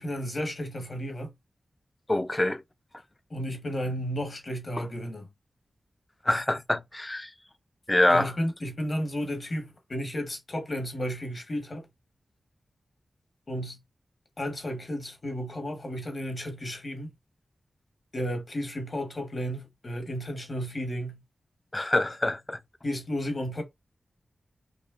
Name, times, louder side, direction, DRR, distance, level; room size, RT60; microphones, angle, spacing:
voice 1, 0.0-1.3 3.3-5.3 8.1-11.9 13.5-13.8 14.4-17.2 18.1-21.2 22.8-23.6, equal, 50° left, 1.3 m, -33 dB
voice 2, 2.1-2.6 4.8-4.9 6.2-7.3 7.9-8.3 21.7-22.6, left 1 dB, 25° left, 0.4 m, -25 dB
4.8 x 2.4 x 2.4 m
cardioid pair, 50°, 0 cm